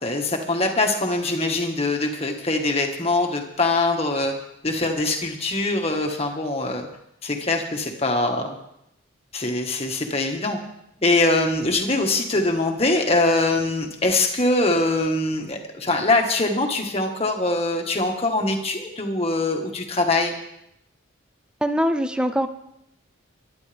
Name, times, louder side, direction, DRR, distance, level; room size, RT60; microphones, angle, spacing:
voice 1, 0.0-4.3 4.6-6.9 7.2-8.6 9.3-10.6 11.0-20.3, left 2 dB, 30° left, 3 dB, 1.7 m, -23 dB
voice 2, 21.6-22.5, equal, 5° right, 9 dB, 0.6 m, -22 dB
23.5 x 11.5 x 3.5 m, 0.80 s
head